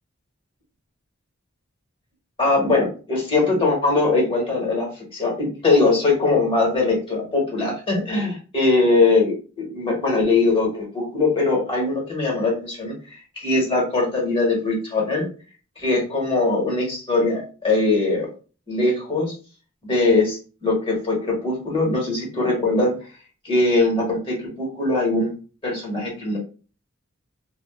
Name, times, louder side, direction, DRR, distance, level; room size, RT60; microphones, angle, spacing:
voice 1, 2.4-15.3 15.8-18.3 18.7-19.3 19.8-22.9 23.4-25.3 25.6-26.4, left 3 dB, 25° left, -3 dB, 1.1 m, -21 dB
2.4 x 2.1 x 3.5 m, 0.36 s
head